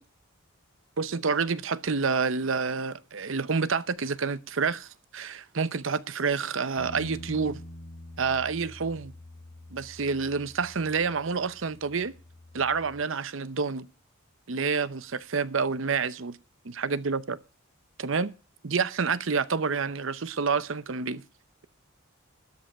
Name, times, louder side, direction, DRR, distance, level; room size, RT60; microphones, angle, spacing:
voice 1, 1.0-7.6 8.2-9.1 9.7-12.1 12.5-13.9 14.5-16.4 16.6-17.4 18.0-18.3 18.6-21.2, right 5 dB, 70° right, 0.7 m, -28 dB
Bass guitar, 6.8-13.0, left 1 dB, 75° left, 2.9 m, -46 dB
12.5 x 5.5 x 8.7 m
head